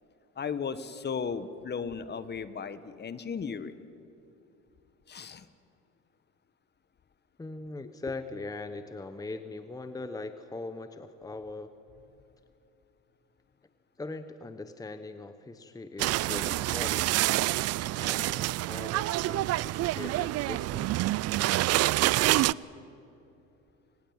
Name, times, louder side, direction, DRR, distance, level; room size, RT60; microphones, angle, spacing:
voice 1, 0.4-3.7 5.1-5.4 7.8-7.9, left 6 dB, 30° left, 13 dB, 1.4 m, -35 dB
voice 2, 7.4-11.7 14.0-17.1 18.0-20.9, left 3 dB, 10° left, 10 dB, 1.0 m, -40 dB
sound 1, 16.0-22.5, right 17 dB, 50° right, 0.5 m, -27 dB
28.5 x 19.0 x 8.9 m, 2.8 s
supercardioid pair, 100°, 34 cm